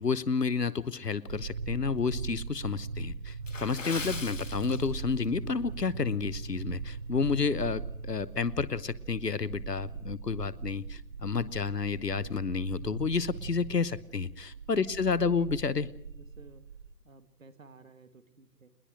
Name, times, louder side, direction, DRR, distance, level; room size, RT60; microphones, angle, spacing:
voice 1, 0.0-15.9, left 5 dB, 75° left, 19 dB, 1.1 m, -30 dB
sound 1, 1.3-16.9, right 4 dB, 30° right, 1.1 m, -40 dB
Water / Splash splatter, 3.4-5.3 5.6-5.9 6.4-6.6 7.1-7.2, left 4 dB, 50° left, 2.0 m, -41 dB
voice 2, 14.7-15.4 15.8-16.6 17.0-18.7, right 4 dB, 55° right, 10 dB, 2.1 m, -51 dB
21.0 x 21.0 x 6.3 m, 0.76 s
figure-of-eight pair, 150°, 49 cm